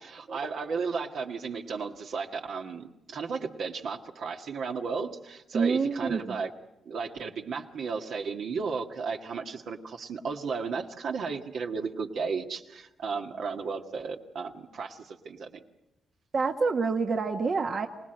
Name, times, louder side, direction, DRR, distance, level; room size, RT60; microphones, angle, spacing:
voice 1, 0.0-6.5 6.9-15.5, right 5 dB, 70° right, 2 dB, 1.7 m, -34 dB
voice 2, 5.5-6.4 16.3-17.9, right 4 dB, 55° right, 4 dB, 1.3 m, -27 dB
25.5 x 18.5 x 7.9 m, 0.95 s
supercardioid pair, 55°, 0 cm